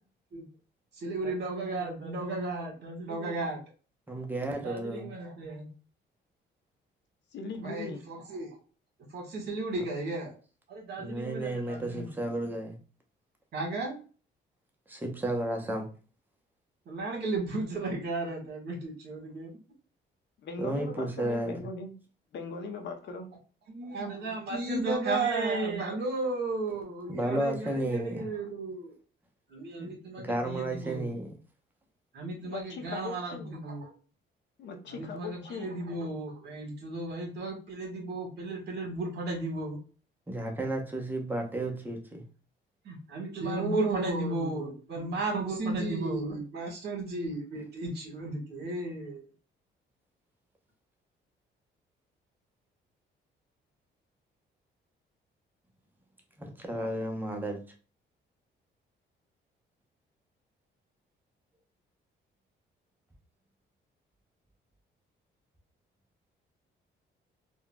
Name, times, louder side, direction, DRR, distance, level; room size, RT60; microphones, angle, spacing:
voice 1, 0.9-3.6 4.5-5.7 7.6-8.6 9.1-10.3 10.7-12.1 13.5-14.0 16.9-19.5 23.7-28.9 29.5-31.1 32.1-33.9 34.9-39.8 42.8-49.2, right 2 dB, 55° right, 1.4 m, -34 dB
voice 2, 4.1-5.1 11.0-12.8 14.9-15.9 20.6-21.6 27.1-28.3 29.8-29.9 30.2-31.3 40.3-42.2 56.4-57.6, right 1 dB, 10° right, 0.8 m, -32 dB
voice 3, 7.3-8.0 20.4-21.9 22.3-23.3 29.8-30.3 32.4-33.6 34.6-35.8, left 4 dB, 65° left, 0.7 m, -40 dB
3.7 x 2.3 x 2.2 m
cardioid pair, 90°, 20 cm